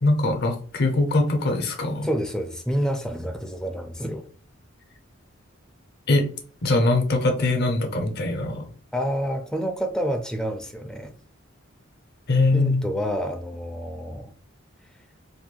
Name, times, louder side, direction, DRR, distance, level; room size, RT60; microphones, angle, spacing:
voice 1, 0.0-2.1 6.1-6.3 6.6-8.7 12.3-12.9, left 2 dB, 50° left, 0.6 m, -22 dB
voice 2, 2.0-4.3 8.9-11.1 12.5-14.3, equal, 5° left, 0.3 m, -28 dB
2.9 x 2.6 x 2.2 m
head